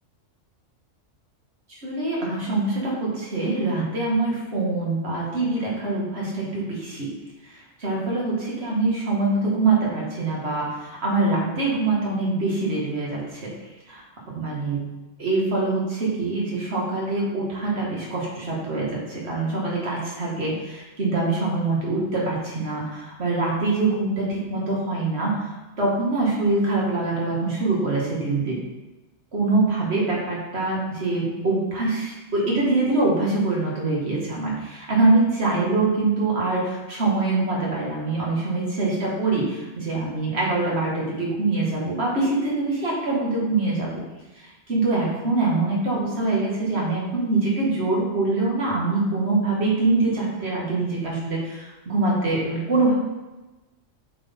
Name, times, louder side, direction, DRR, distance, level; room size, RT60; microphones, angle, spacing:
voice 1, 1.8-7.1 7.8-13.5 13.9-14.0 14.3-14.8 15.2-28.6 29.3-44.0 44.4-52.9, right 3 dB, 55° right, -4 dB, 2.0 m, -24 dB
8.2 x 4.1 x 3.6 m, 1.1 s
omnidirectional pair, 1.3 m